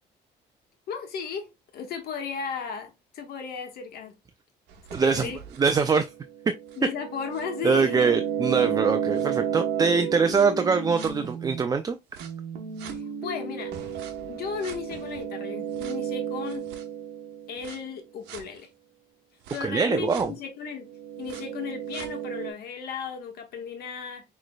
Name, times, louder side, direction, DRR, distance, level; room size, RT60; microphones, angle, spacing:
voice 1, 0.9-4.1 5.0-5.4 6.8-8.1 12.9-13.7 14.2-16.6 17.5-18.7 19.5-20.8 21.2-24.2, left 6 dB, 65° left, 1.4 m, -35 dB
sound 1, 4.7-11.6 12.2-17.8 18.3-18.4 19.5-19.6 20.1-20.2 20.8-22.5, right 8 dB, 85° right, 0.9 m, -33 dB
voice 2, 4.9-5.3 5.6-6.0 7.6-12.0 19.6-20.3, right 5 dB, 20° right, 0.4 m, -23 dB
6.2 x 3.2 x 2.2 m
cardioid pair, 110°, 17 cm